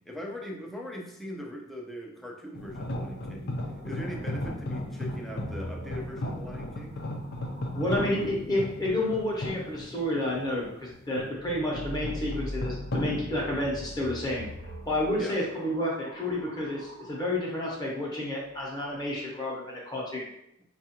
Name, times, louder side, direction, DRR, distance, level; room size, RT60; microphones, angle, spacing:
voice 1, 0.0-7.0 15.2-15.4, left 1 dB, ahead, -1 dB, 0.5 m, -40 dB
sound 1, 2.5-14.4, left 1 dB, 55° left, 0.5 m, -36 dB
sound 2, 3.7-8.3 11.3-17.4 18.4-19.0, equal, 90° right, 0.8 m, -43 dB
voice 2, 7.7-14.5 14.9-20.3, left 1 dB, 20° left, -4 dB, 0.9 m, -30 dB
4.6 x 2.4 x 2.8 m, 0.78 s
head